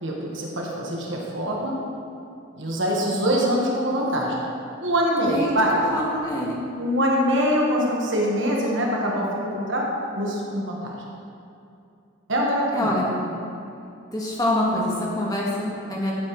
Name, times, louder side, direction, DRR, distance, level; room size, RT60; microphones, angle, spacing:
voice 1, 0.0-1.7 2.6-4.4 4.8-5.8 6.8-9.9 10.2-10.9 12.3-12.9, equal, 65° right, -2 dB, 1.4 m, -24 dB
voice 2, 5.3-6.6 12.7-13.2 14.1-16.1, left 1 dB, 20° left, -4 dB, 1.6 m, -25 dB
13.0 x 8.2 x 3.2 m, 2.6 s
head